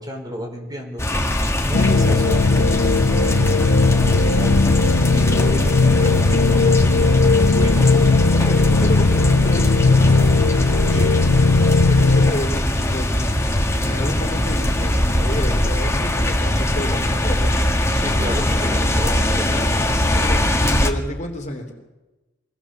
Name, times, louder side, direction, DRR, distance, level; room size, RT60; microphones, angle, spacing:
voice 1, 0.0-4.6 5.1-7.9 10.9-11.3 17.9-19.8, equal, 20° right, 1 dB, 5.0 m, -32 dB
sound 1, 1.0-20.9, left 1 dB, 15° left, 1.8 m, -21 dB
sound 2, 1.7-12.3, left 3 dB, 75° left, 0.9 m, -17 dB
voice 2, 8.3-10.3 11.8-13.1 13.8-17.5 20.1-21.7, left 1 dB, 40° left, 3 dB, 3.0 m, -30 dB
24.5 x 18.5 x 7.2 m, 1.1 s
head